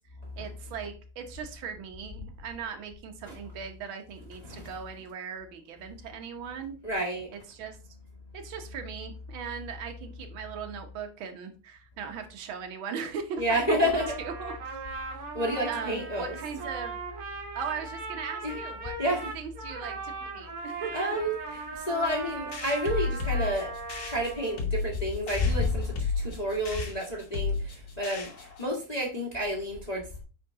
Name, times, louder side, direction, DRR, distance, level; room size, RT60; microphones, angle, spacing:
voice 1, 0.4-6.8 7.3-7.8 8.3-13.9 14.2-14.8 15.7-17.0 17.5-21.2, right 6 dB, 70° right, 1.2 m, -39 dB
voice 2, 6.8-7.3 13.4-14.0 15.3-16.4 18.4-18.5 19.0-19.2 20.9-23.7 24.0-30.2, equal, 30° left, 0.7 m, -30 dB
Trumpet, 13.9-24.6, right 3 dB, 50° right, 2.4 m, -39 dB
sound 1, 22.5-28.7, left 4 dB, 55° left, 1.0 m, -34 dB
8.8 x 3.8 x 3.6 m
omnidirectional pair, 3.5 m